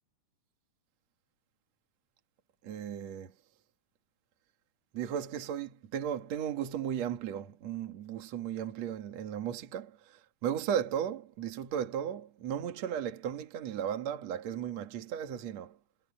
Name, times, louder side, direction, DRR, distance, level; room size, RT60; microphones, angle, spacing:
voice 1, 2.6-3.3 4.9-9.9 10.4-15.7, right 9 dB, 50° right, 2.7 m, -35 dB
omnidirectional pair, 4.4 m